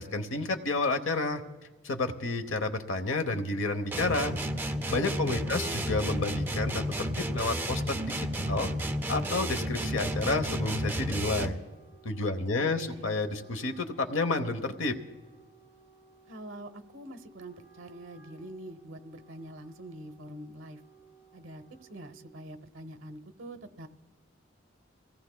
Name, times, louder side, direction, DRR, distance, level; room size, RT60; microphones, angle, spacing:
voice 1, 0.0-1.4 1.8-4.4 4.7-8.7 9.1-11.6 12.0-14.9, left 3 dB, 80° left, 8 dB, 1.0 m, -30 dB
sound 1, 3.9-11.7, equal, 10° right, 0.4 m, -32 dB
Wind instrument woodwind instrument, 5.1-22.5, right 4 dB, 50° left, 4.8 m, -58 dB
voice 2, 5.2-5.8 12.6-13.1 16.3-20.8 21.3-23.9, right 1 dB, 80° right, 9 dB, 0.9 m, -45 dB
23.5 x 17.0 x 2.3 m, 1.3 s
head